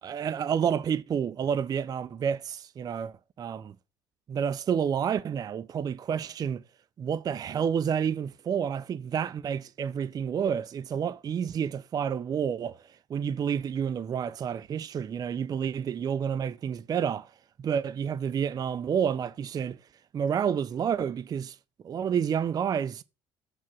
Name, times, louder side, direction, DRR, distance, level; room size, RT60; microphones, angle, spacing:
voice 1, 0.0-3.7 4.3-6.6 7.0-17.3 17.6-19.8 20.1-21.6 21.8-23.0, right 7 dB, 35° right, 0.4 m, -29 dB
7.3 x 4.8 x 6.0 m
hypercardioid pair, 60°, 11 cm